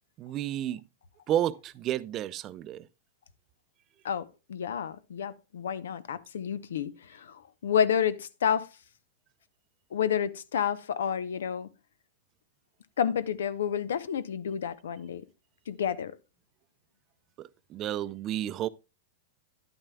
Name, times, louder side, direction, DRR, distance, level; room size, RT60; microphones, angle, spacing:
voice 1, 0.2-0.8 1.3-2.9 17.4-18.7, right 12 dB, 35° right, 0.4 m, -31 dB
voice 2, 4.0-8.7 9.9-11.7 13.0-15.2 15.7-16.1, left 8 dB, 80° left, 0.6 m, -30 dB
10.5 x 8.9 x 2.3 m
hypercardioid pair, 125°, 0 cm